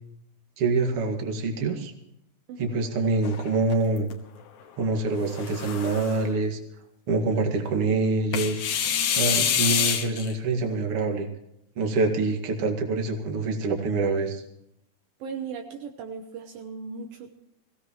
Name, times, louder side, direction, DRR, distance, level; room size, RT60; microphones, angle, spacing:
voice 1, 0.6-1.9 2.6-4.1 4.8-6.6 7.1-8.6 9.1-11.3 11.8-14.4, right 3 dB, 40° right, 3 dB, 2.6 m, -25 dB
voice 2, 2.5-2.9 15.2-17.4, right 5 dB, 75° right, 5 dB, 2.6 m, -38 dB
sound 1, 3.2-4.1 5.2-6.3 8.3-10.3, left 8 dB, 60° left, 2.5 m, -26 dB
22.5 x 16.5 x 3.1 m, 0.79 s
omnidirectional pair, 4.5 m